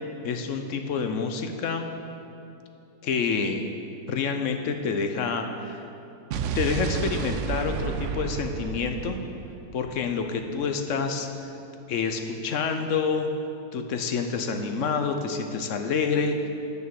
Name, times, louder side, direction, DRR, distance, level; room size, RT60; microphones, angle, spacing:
voice 1, 0.2-1.9 3.0-3.7 4.1-5.8 6.5-9.2 9.7-11.5 11.9-13.3 13.7-16.5, left 5 dB, 60° left, 6 dB, 0.8 m, -28 dB
Explosion, 6.3-10.4, right 6 dB, 70° right, 0.7 m, -31 dB
8.9 x 6.7 x 6.9 m, 2.7 s
omnidirectional pair, 1.8 m